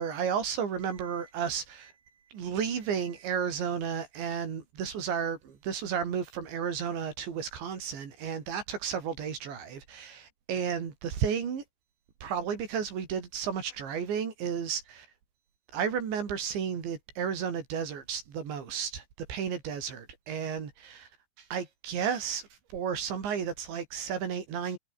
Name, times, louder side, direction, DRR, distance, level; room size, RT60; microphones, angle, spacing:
voice 1, 0.0-1.9 2.3-11.6 12.2-15.1 15.7-19.0 19.3-21.1 21.5-24.8, right 7 dB, 70° right, 6.2 m, -33 dB
omnidirectional pair, 5.4 m